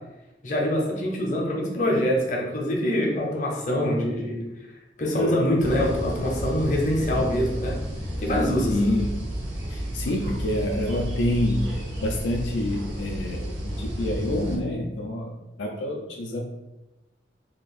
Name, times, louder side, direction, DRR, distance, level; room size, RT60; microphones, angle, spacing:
voice 1, 0.4-4.4 5.0-7.8 8.2-8.7 10.0-10.1, left 1 dB, 40° left, -1 dB, 0.7 m, -24 dB
sound 1, 5.6-14.6, right 1 dB, 70° right, 0.9 m, -32 dB
voice 2, 8.7-9.2 9.7-15.3 15.6-16.4, left 1 dB, 80° left, 1 dB, 0.4 m, -27 dB
2.9 x 2.4 x 4.0 m, 1.0 s
head